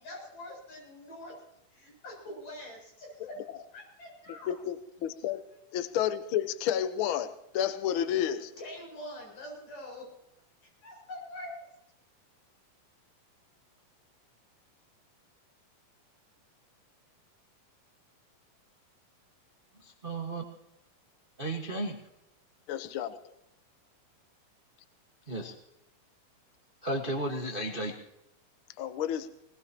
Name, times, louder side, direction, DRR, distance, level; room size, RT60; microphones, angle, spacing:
voice 1, 0.0-1.4 1.7-3.4 3.7-4.5 8.6-10.1 10.8-11.6, left 1 dB, 70° left, -1 dB, 9.6 m, -44 dB
voice 2, 4.3-5.4 5.7-8.5 22.7-23.3 28.8-29.3, left 10 dB, 90° left, 10 dB, 1.1 m, -31 dB
voice 3, 19.8-20.4 21.4-22.0 25.3-25.5 26.8-28.0, right 1 dB, 50° right, 1 dB, 0.6 m, -33 dB
20.5 x 20.5 x 2.9 m, 0.83 s
omnidirectional pair, 3.9 m